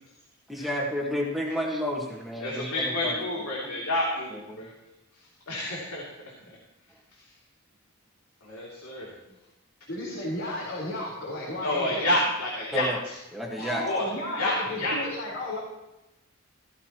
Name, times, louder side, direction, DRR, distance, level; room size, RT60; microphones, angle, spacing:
voice 1, 0.5-3.2 3.6-3.7 4.5-4.7 12.7-13.0 13.3-13.8, equal, ahead, -2 dB, 1.6 m, -31 dB
voice 2, 2.4-4.7 5.1-6.0 6.5-6.6 7.2-7.3 8.4-9.1 11.6-13.2 13.7-15.0, left 1 dB, 85° left, -4 dB, 2.9 m, -29 dB
voice 3, 9.9-12.1 13.6-15.6, left 1 dB, 60° left, -7 dB, 4.2 m, -33 dB
16.0 x 13.5 x 3.0 m, 0.98 s
head